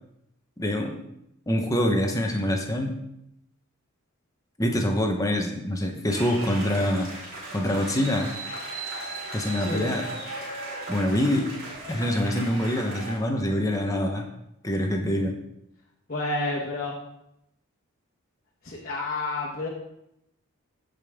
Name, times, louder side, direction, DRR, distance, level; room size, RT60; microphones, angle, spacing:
voice 1, 0.6-1.0 1.5-3.0 4.6-7.1 7.5-8.3 9.3-10.1 10.9-11.5 11.9-14.3 14.6-15.4, equal, 15° left, 2 dB, 1.1 m, -25 dB
sound 1, 6.1-13.2, right 2 dB, 45° right, 3.6 m, -37 dB
voice 2, 9.6-9.9 16.1-16.9 18.6-19.7, left 2 dB, 40° left, -5 dB, 1.5 m, -29 dB
14.5 x 5.3 x 3.7 m, 0.80 s
head